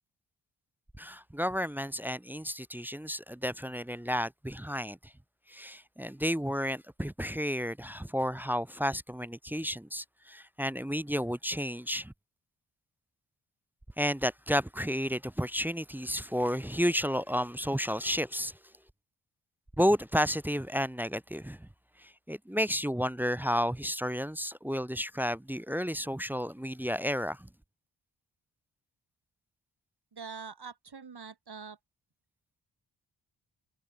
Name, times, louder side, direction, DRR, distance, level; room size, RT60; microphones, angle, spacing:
voice 1, 1.0-5.1 5.5-12.1 14.0-18.6 19.8-21.7 22.0-27.5, equal, 5° right, 0.4 m, -32 dB
voice 2, 30.1-31.8, right 5 dB, 55° right, 4.2 m, -44 dB
supercardioid pair, 45°, 46 cm